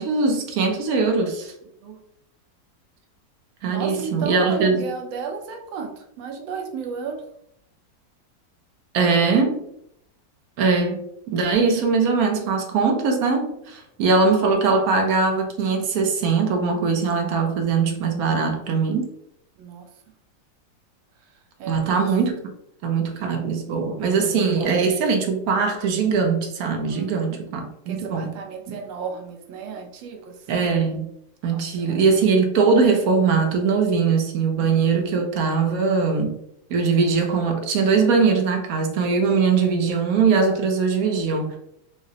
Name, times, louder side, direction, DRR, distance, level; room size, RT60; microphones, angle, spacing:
voice 1, 0.0-1.5 3.6-4.9 8.9-9.6 10.6-19.1 21.7-22.4 22.8-28.3 28.7-28.8 30.5-31.1 31.4-36.4 36.7-41.6, right 4 dB, 65° right, 0.9 m, -21 dB
voice 2, 3.7-7.2 19.6-19.9 21.6-22.1 23.1-23.3 26.9-27.4 27.9-30.4 31.5-32.0 34.6-35.2, right 5 dB, 85° right, 1.3 m, -34 dB
5.0 x 2.0 x 2.7 m
omnidirectional pair, 2.0 m